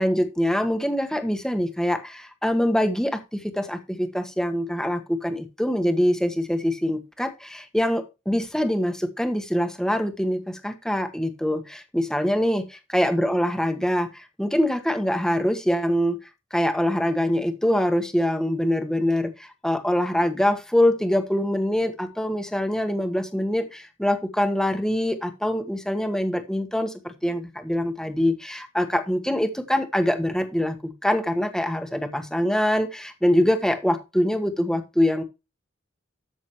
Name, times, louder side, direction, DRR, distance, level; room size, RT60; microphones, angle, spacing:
voice 1, 0.0-12.7 12.9-16.2 16.5-35.2, equal, 5° left, 6 dB, 1.4 m, -24 dB
13.5 x 6.3 x 3.1 m, 0.26 s
head